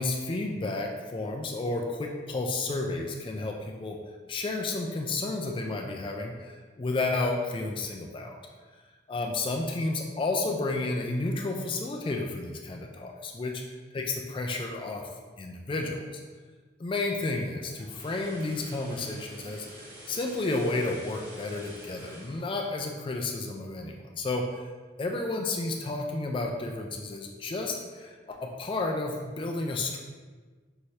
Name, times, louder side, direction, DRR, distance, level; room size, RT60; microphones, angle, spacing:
voice 1, 0.0-4.0 4.3-8.4 9.1-13.6 13.9-15.1 15.4-16.0 16.8-19.7 20.1-24.6 25.0-30.0, left 2 dB, 30° left, 2 dB, 0.4 m, -31 dB
sound 1, 17.5-23.7 24.0-24.2, right 1 dB, 50° right, 1.4 m, -48 dB
5.6 x 2.7 x 3.1 m, 1.4 s
head